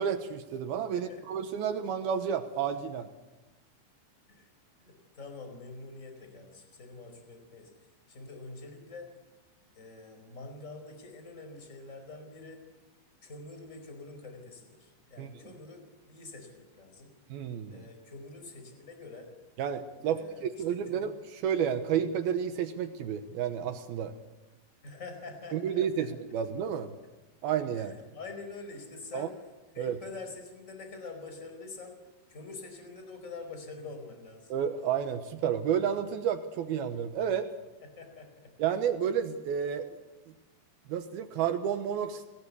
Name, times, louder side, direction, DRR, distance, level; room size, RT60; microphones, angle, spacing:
voice 1, 0.0-3.1 15.2-15.3 17.3-17.9 19.6-21.1 21.4-24.1 25.5-27.0 27.4-28.0 29.1-29.3 29.8-30.0 34.5-37.5 38.6-39.9 40.9-42.2, right 8 dB, 70° right, 9 dB, 2.5 m, -31 dB
voice 2, 0.9-1.2 4.3-4.5 4.8-7.7 8.1-9.1 9.7-12.6 13.2-17.1 17.7-19.3 20.0-21.1 24.8-26.1 27.8-29.3 29.7-32.0 32.3-34.5 37.9-38.5, left 3 dB, 15° left, 5 dB, 4.5 m, -46 dB
27.5 x 19.0 x 8.4 m, 1.1 s
omnidirectional pair, 5.3 m